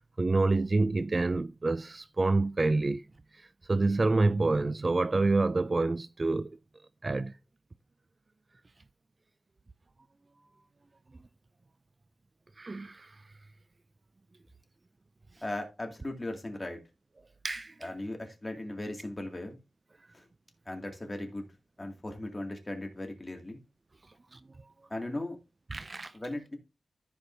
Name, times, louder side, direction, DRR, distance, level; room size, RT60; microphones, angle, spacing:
voice 1, 0.2-3.0 3.7-6.5 7.0-7.3 12.6-13.2 17.4-17.7 24.3-24.4 25.7-26.1, right 3 dB, 35° right, 0.4 m, -27 dB
voice 2, 15.4-16.8 17.8-19.6 20.1-20.2 20.7-21.5 21.8-23.6 24.9-25.4 26.1-26.6, left 1 dB, 25° left, 2.2 m, -37 dB
14.5 x 5.1 x 2.6 m
wide cardioid pair, 80°, 0 cm